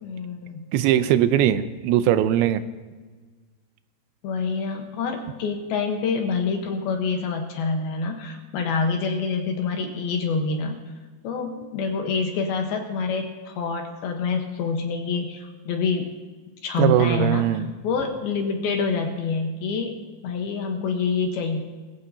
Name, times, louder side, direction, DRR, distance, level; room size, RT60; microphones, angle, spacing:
voice 1, 0.0-0.7 4.2-10.8 11.2-16.1 16.6-21.6, left 4 dB, 70° left, 4 dB, 2.7 m, -26 dB
voice 2, 0.7-2.6 16.8-17.7, right 11 dB, 85° right, 12 dB, 2.9 m, -20 dB
20.5 x 15.0 x 2.8 m, 1.4 s
omnidirectional pair, 5.1 m